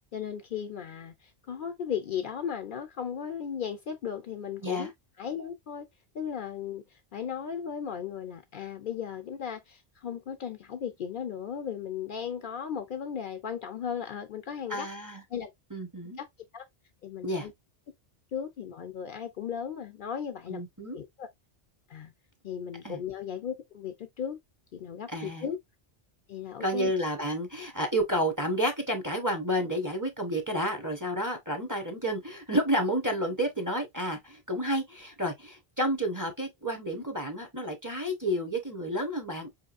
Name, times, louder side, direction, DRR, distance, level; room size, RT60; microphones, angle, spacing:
voice 1, 0.1-4.9 5.2-5.9 6.1-14.9 15.3-15.5 16.2-16.3 16.5-16.7 17.0-17.5 18.3-20.6 20.9-21.3 21.9-22.1 22.4-24.4 24.7-25.6 26.3-26.9, left 8 dB, 60° left, 0.6 m, -36 dB
voice 2, 14.7-15.2 15.7-16.2 17.2-17.5 20.5-21.0 22.8-23.0 25.1-25.5 26.6-39.6, equal, 20° right, 0.7 m, -30 dB
4.6 x 2.9 x 2.4 m
omnidirectional pair, 1.1 m